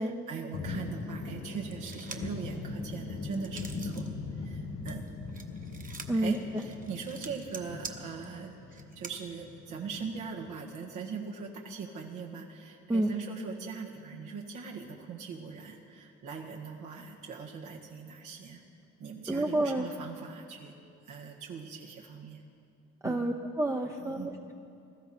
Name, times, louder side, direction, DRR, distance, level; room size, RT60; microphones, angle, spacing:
voice 1, 0.0-5.0 6.1-18.6 19.0-20.7 21.0-22.4 23.0-23.3 24.0-24.3, right 5 dB, 80° right, -2 dB, 1.8 m, -41 dB
sound 1, 0.5-10.5, left 3 dB, 60° left, 2.0 m, -40 dB
sound 2, 1.7-2.4 2.8-4.1 4.4-9.1, right 4 dB, 25° right, 1.2 m, -46 dB
voice 2, 19.3-19.9 23.0-24.5, right 1 dB, 10° right, 2 dB, 0.7 m, -29 dB
21.0 x 13.5 x 4.3 m, 2.5 s
cardioid pair, 90°, 30 cm